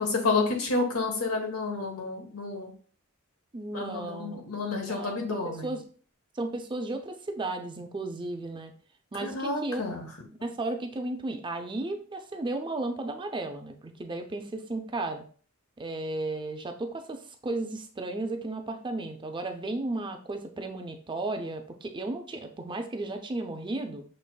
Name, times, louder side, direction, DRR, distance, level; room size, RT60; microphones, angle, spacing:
voice 1, 0.0-2.7 3.7-5.7 9.2-10.1, left 3 dB, 90° left, 2 dB, 1.2 m, -30 dB
voice 2, 3.5-4.4 4.9-5.8 6.3-8.7 9.1-9.8 10.4-15.2 15.8-24.0, right 2 dB, 20° right, 5 dB, 0.4 m, -34 dB
6.5 x 3.0 x 2.3 m, 0.43 s
head